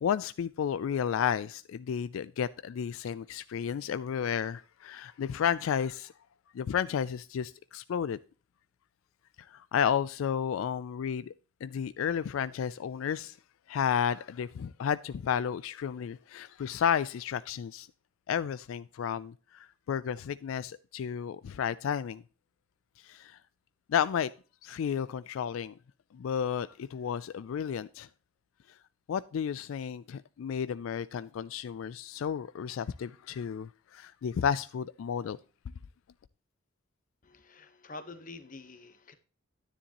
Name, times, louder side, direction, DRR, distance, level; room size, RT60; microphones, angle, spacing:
voice 1, 0.0-6.1 6.5-8.2 9.5-11.3 11.6-13.4 13.7-17.9 18.3-22.2 23.0-23.4 23.9-24.3 24.6-25.7 26.1-28.1 29.1-35.4, left 8 dB, 85° left, 0.3 m, -32 dB
voice 2, 37.2-39.1, left 3 dB, 40° left, 1.0 m, -47 dB
9.9 x 9.9 x 2.9 m
head